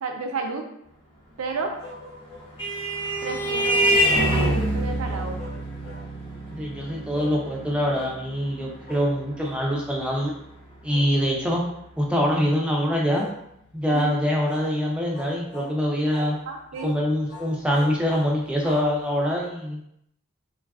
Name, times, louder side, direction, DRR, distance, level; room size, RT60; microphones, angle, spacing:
voice 1, 0.0-0.7 1.4-1.9 3.2-5.4 13.9-14.1 16.5-16.9, right 4 dB, 80° right, 3 dB, 0.5 m, -31 dB
sound 1, 1.8-2.5 3.5-4.6 5.0-6.1 7.1-7.4 7.9-8.2 8.9-9.1 9.4-9.6 10.0-10.2 10.9-11.1 11.4-11.7 12.2-12.5 13.1-13.4 13.9-14.2 14.5-14.7 15.1-15.8 16.1-16.4 16.7-17.0 17.3-19.4, left 2 dB, 55° left, 0.7 m, -43 dB
Vehicle horn car horn honking, 2.0-10.9, right 1 dB, 20° left, 0.9 m, -27 dB
voice 2, 6.5-10.3 10.8-11.6 12.0-13.3 13.7-16.4 16.8-19.8, equal, 5° right, -2 dB, 0.4 m, -24 dB
3.3 x 2.3 x 2.3 m, 0.76 s
head